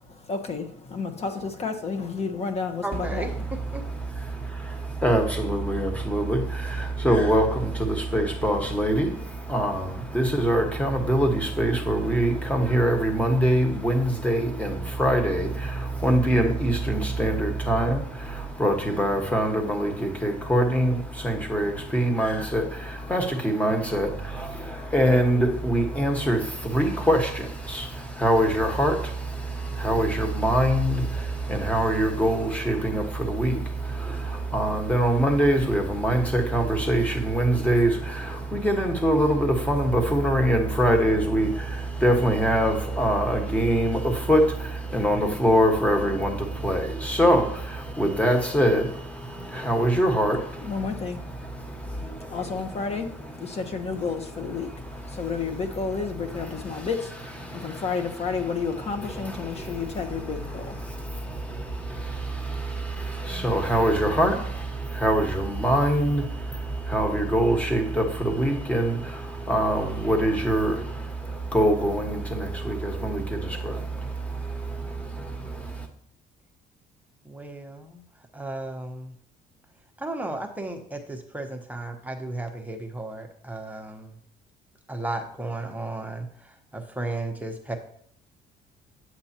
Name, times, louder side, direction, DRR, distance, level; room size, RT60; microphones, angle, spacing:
voice 1, 0.0-3.5 49.5-49.7 50.6-60.9, left 5 dB, 40° left, 7 dB, 1.2 m, -32 dB
voice 2, 2.8-3.8 77.2-78.0 78.3-79.1 80.0-84.2 84.9-87.8, right 2 dB, 10° right, 3 dB, 1.0 m, -34 dB
voice 3, 3.7-53.6 53.9-54.1 54.4-56.0 56.3-56.9 57.4-58.1 58.4-75.9, right 1 dB, 10° left, 3 dB, 1.5 m, -25 dB
8.0 x 7.9 x 2.9 m, 0.64 s
cardioid pair, 110°, 17 cm